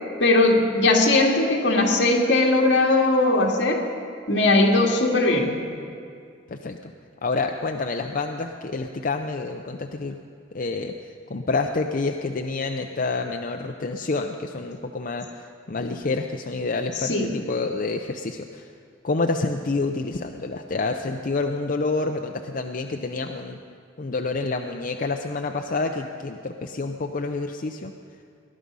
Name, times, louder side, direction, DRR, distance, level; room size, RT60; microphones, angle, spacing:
voice 1, 0.2-3.8 4.3-5.6 17.0-17.3, left 2 dB, 65° left, 0 dB, 2.0 m, -19 dB
voice 2, 6.5-6.9 7.2-10.2 10.5-18.7 19.0-23.6 24.0-27.9, left 3 dB, 45° left, 4 dB, 0.5 m, -28 dB
19.0 x 11.5 x 5.4 m, 2.3 s
head